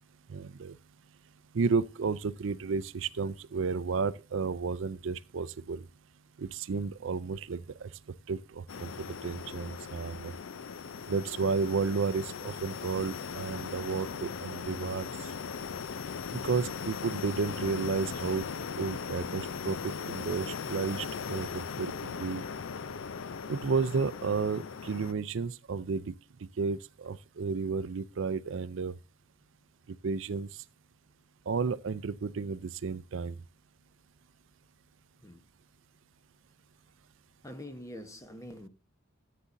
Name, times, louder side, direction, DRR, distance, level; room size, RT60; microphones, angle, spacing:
voice 1, 0.3-0.8 1.5-5.8 6.4-7.9 8.3-10.3 11.1-15.1 16.3-18.5 18.7-22.4 23.5-26.2 26.6-28.9 30.0-30.5 31.5-33.4, right 5 dB, 65° right, 0.5 m, -32 dB
sound 1, 8.7-25.1, left 6 dB, 70° left, 0.5 m, -39 dB
voice 2, 37.4-38.7, left 1 dB, 15° left, 1.0 m, -44 dB
13.5 x 8.5 x 2.6 m
head